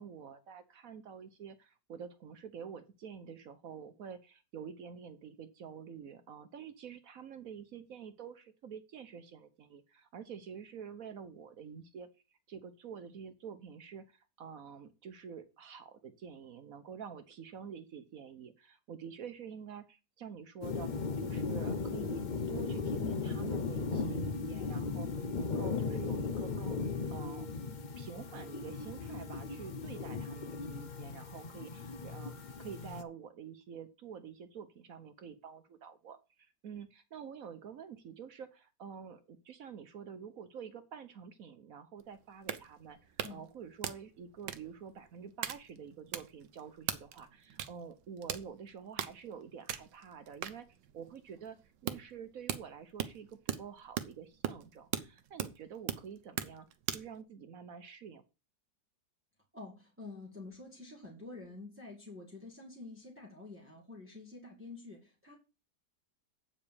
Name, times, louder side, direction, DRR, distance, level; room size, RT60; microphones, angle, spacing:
voice 1, 0.0-12.1 12.5-22.2 22.5-26.8 27.1-27.5 28.0-50.7 50.9-51.6 51.8-58.2, right 7 dB, 60° right, 10 dB, 1.1 m, -48 dB
sound 1, 20.6-33.0, left 4 dB, 85° left, 0.4 m, -37 dB
sound 2, 42.0-57.2, right 10 dB, 85° right, 1.4 m, -41 dB
voice 2, 59.5-65.4, left 3 dB, 5° right, -2 dB, 2.2 m, -48 dB
8.5 x 4.9 x 7.0 m, 0.30 s
omnidirectional pair, 1.9 m